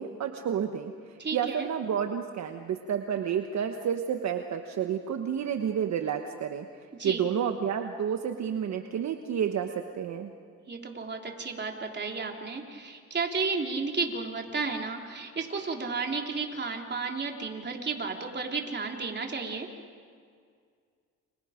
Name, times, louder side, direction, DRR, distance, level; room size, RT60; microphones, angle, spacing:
voice 1, 0.0-10.3, right 8 dB, 65° right, 6 dB, 1.3 m, -30 dB
voice 2, 1.2-1.7 7.0-7.2 10.7-19.7, right 4 dB, 35° right, 2 dB, 3.6 m, -33 dB
29.5 x 27.5 x 5.2 m, 2.1 s
cardioid pair, 90°, 30 cm